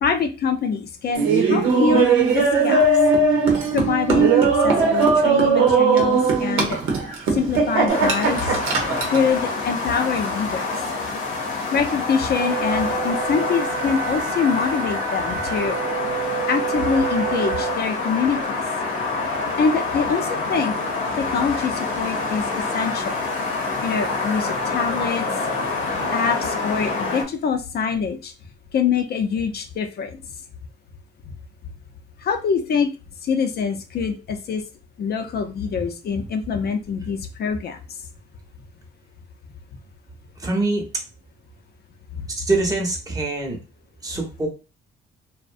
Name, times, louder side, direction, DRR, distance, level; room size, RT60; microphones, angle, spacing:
voice 1, 0.0-2.9 3.7-4.3 4.6-6.8 7.3-8.6 9.1-10.8 11.7-15.8 16.5-18.6 19.6-20.7 21.2-22.4 22.7-23.1 23.8-25.2 26.1-28.3 28.7-30.2 32.2-32.9 33.2-34.6 35.0-37.8 42.1-42.2, left 6 dB, 55° left, 6 dB, 0.5 m, -24 dB
Laughter, 1.1-9.2, right 4 dB, 90° right, 0.7 m, -18 dB
sound 1, 7.9-27.2, left 3 dB, 85° left, 0.7 m, -26 dB
Wind instrument woodwind instrument, 12.4-17.8, right 13 dB, 55° right, 0.5 m, -30 dB
voice 2, 40.4-40.8 42.3-43.6 44.0-44.5, right 2 dB, 20° right, 1 dB, 0.8 m, -24 dB
2.5 x 2.1 x 2.4 m, 0.30 s
cardioid pair, 90°, 20 cm